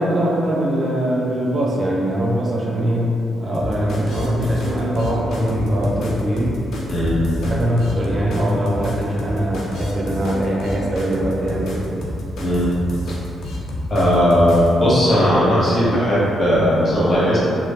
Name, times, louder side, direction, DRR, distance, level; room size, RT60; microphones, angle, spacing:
voice 1, 0.0-6.6 7.4-11.9, equal, 40° right, -3 dB, 0.5 m, -21 dB
sound 1, 3.5-14.7, left 1 dB, 70° left, 0.5 m, -29 dB
voice 2, 6.9-7.2 12.4-12.7 13.9-17.4, equal, 35° left, -9 dB, 1.2 m, -17 dB
3.0 x 2.4 x 2.7 m, 2.7 s
supercardioid pair, 50°, 0 cm